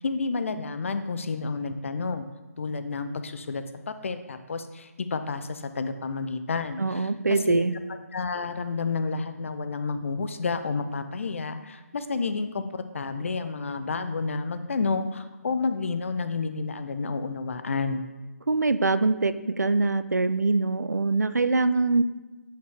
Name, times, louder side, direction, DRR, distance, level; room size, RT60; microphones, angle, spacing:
voice 1, 0.0-2.2 2.6-7.6 8.1-18.0, left 4 dB, 50° left, 10 dB, 0.5 m, -30 dB
voice 2, 6.8-7.7 18.5-22.0, right 3 dB, 90° right, 13 dB, 0.4 m, -23 dB
7.3 x 5.7 x 3.3 m, 1.2 s
figure-of-eight pair, 150°, 9 cm